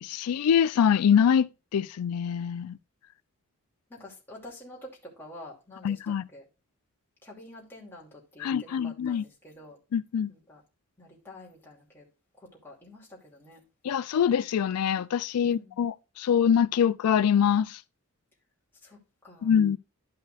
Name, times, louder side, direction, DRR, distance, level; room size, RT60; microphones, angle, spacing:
voice 1, 0.0-2.8 5.8-6.2 8.4-9.2 9.9-10.3 13.8-17.8 19.4-19.8, left 8 dB, 85° left, 0.3 m, -24 dB
voice 2, 3.9-6.4 7.2-9.8 10.3-10.6 11.0-12.0 12.4-13.6 15.4-15.7 18.8-19.0 19.2-19.6, left 1 dB, 10° left, 2.5 m, -48 dB
12.0 x 5.6 x 2.4 m
head